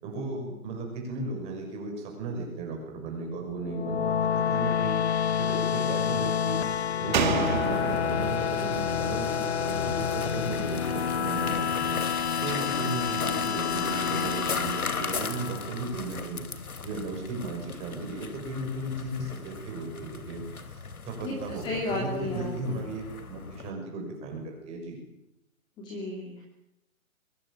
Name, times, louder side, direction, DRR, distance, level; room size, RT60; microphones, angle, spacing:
voice 1, 0.0-5.0 5.4-6.6 7.0-12.0 12.4-16.4 16.8-20.4 20.7-23.0 23.3-25.0, right 2 dB, 15° right, 2 dB, 6.1 m, -35 dB
sound 1, 3.6-16.0, left 8 dB, 50° left, 0.8 m, -28 dB
Slam, 7.1-10.6 10.9-11.0, right 8 dB, 35° right, 1.7 m, -32 dB
sound 2, 7.2-23.7, left 4 dB, 85° left, 3.5 m, -38 dB
voice 2, 21.2-22.9 25.8-26.4, left 2 dB, 10° left, 0 dB, 2.7 m, -34 dB
22.5 x 21.0 x 8.6 m, 0.87 s
hypercardioid pair, 165°, 42 cm